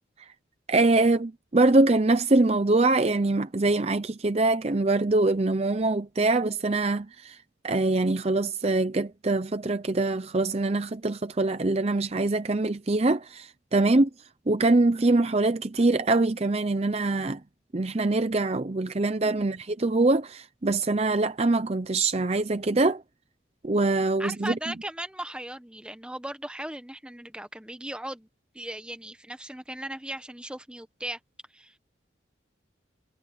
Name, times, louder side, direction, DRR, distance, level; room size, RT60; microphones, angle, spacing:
voice 1, 0.7-7.4 7.6-14.1 14.5-17.4 17.7-23.0 23.6-24.5, right 2 dB, 35° right, 0.6 m, -24 dB
voice 2, 24.2-28.3 28.5-31.2 31.5-31.8, right 1 dB, 5° right, 1.3 m, -38 dB
head